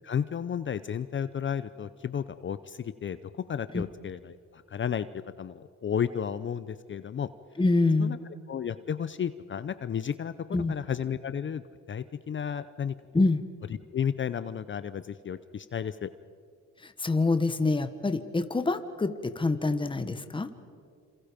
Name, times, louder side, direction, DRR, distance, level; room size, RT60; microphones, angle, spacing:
voice 1, 0.0-7.3 8.0-8.2 8.5-11.6 11.9-13.0 13.9-16.1, left 8 dB, 40° left, 14 dB, 0.7 m, -33 dB
voice 2, 7.6-8.2 10.5-10.7 13.1-13.4 16.8-20.5, left 3 dB, 15° left, 10 dB, 1.3 m, -26 dB
27.5 x 27.5 x 5.2 m, 2.3 s
cardioid pair, 90°, 30 cm